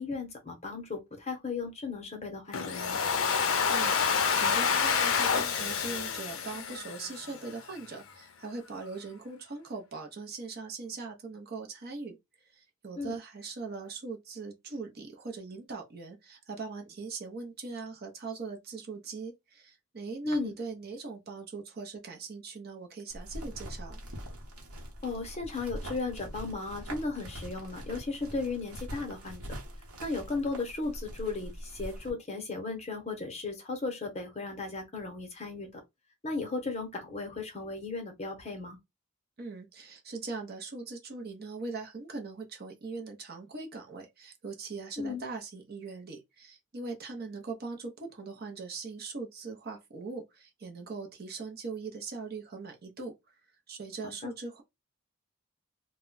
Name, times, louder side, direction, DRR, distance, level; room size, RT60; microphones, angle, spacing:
voice 1, 0.0-3.0 13.0-13.1 20.2-20.5 25.0-29.4 30.0-35.8 36.2-38.8 45.0-45.2 54.0-54.3, left 3 dB, 30° left, 0.7 m, -35 dB
Domestic sounds home sounds, 2.5-7.5, left 6 dB, 65° left, 0.5 m, -28 dB
voice 2, 3.7-24.0 39.4-53.3 53.7-54.6, right 4 dB, 45° right, 0.6 m, -41 dB
sound 1, 23.1-32.1, equal, 85° right, 1.0 m, -43 dB
2.2 x 2.1 x 3.8 m
head